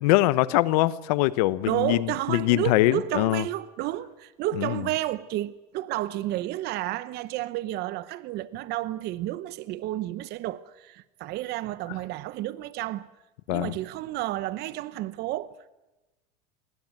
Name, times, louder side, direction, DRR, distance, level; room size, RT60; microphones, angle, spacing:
voice 1, 0.0-3.4 4.6-4.8 13.5-13.7, left 17 dB, 80° left, 1.0 m, -23 dB
voice 2, 1.6-13.1 13.5-15.7, right 15 dB, 55° right, 0.9 m, -31 dB
21.5 x 18.5 x 9.3 m
supercardioid pair, 105°, 20 cm